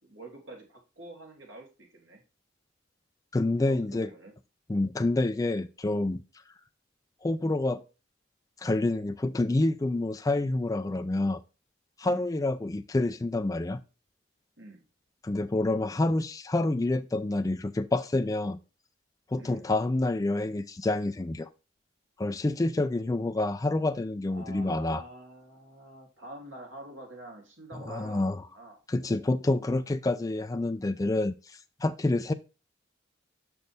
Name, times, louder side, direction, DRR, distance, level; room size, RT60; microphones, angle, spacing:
voice 1, 0.0-2.2 3.6-4.3 12.0-12.2 14.6-14.8 19.4-19.7 24.3-28.8, right 2 dB, 70° right, 3.0 m, -47 dB
voice 2, 3.3-4.1 4.7-6.2 7.2-7.8 8.6-11.4 12.0-13.8 15.2-18.6 19.3-21.5 22.2-25.0 27.9-28.4 28.9-32.3, left 2 dB, 20° left, 0.4 m, -28 dB
6.4 x 6.1 x 3.5 m
head